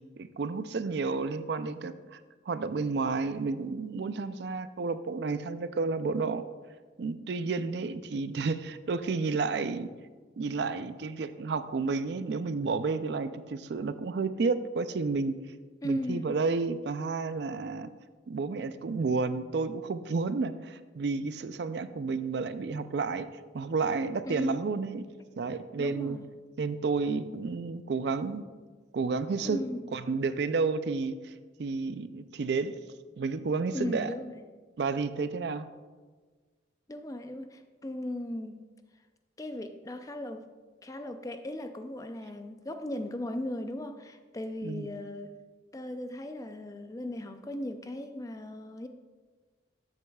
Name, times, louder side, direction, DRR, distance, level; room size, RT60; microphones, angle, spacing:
voice 1, 0.2-2.2 2.5-6.4 7.0-9.9 10.4-15.4 15.8-17.9 18.3-23.3 23.5-25.0 25.4-26.2 26.6-28.4 28.9-29.6 29.9-31.3 31.6-32.7 33.2-34.1 34.8-35.7 44.6-44.9, right 4 dB, 60° right, 12 dB, 0.4 m, -31 dB
voice 2, 15.8-16.4 24.3-24.6 25.8-26.3 29.4-29.8 33.7-34.4 36.9-38.7 39.4-40.5 40.8-45.4 45.7-48.9, left 1 dB, 20° left, 8 dB, 0.4 m, -37 dB
13.0 x 7.9 x 2.3 m, 1.4 s
head